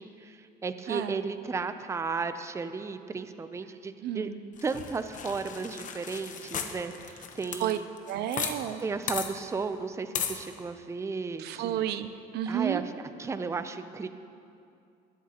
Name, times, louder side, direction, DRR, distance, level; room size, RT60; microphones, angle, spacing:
voice 1, 0.0-4.3 4.6-7.9 8.8-11.8 12.5-12.9 13.2-14.1, right 4 dB, 15° right, 10 dB, 0.4 m, -34 dB
voice 2, 0.9-1.2 4.0-4.4 7.6-7.8 8.1-8.8 11.4-12.8, right 11 dB, 75° right, 12 dB, 0.5 m, -31 dB
sound 1, 4.6-8.5 8.8-8.9 9.1-9.3 10.1-10.4, left 7 dB, 50° left, 0.9 m, -35 dB
20.5 x 7.3 x 2.9 m, 2.5 s
cardioid pair, 110°, 17 cm